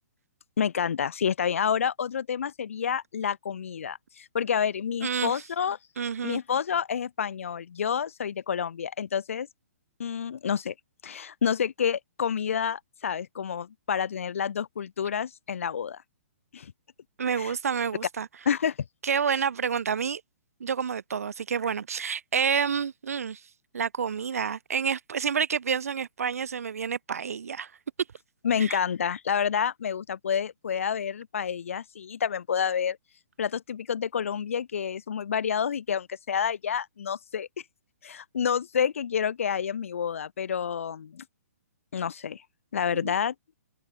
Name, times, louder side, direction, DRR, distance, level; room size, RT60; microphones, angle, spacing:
voice 1, 0.6-5.8 6.2-9.5 10.0-10.7 11.0-16.0 16.5-16.7 17.3-17.5 18.5-18.8 28.4-33.0 33.4-37.5 38.0-41.2 41.9-42.4 42.7-43.3, left 7 dB, 60° left, 4.2 m, -29 dB
voice 2, 5.0-5.4 6.0-6.4 17.2-18.3 19.0-20.2 20.6-23.4 23.7-27.7 28.6-28.8 43.0-43.1, right 7 dB, 70° right, 4.3 m, -29 dB
hypercardioid pair, 175°, 8 cm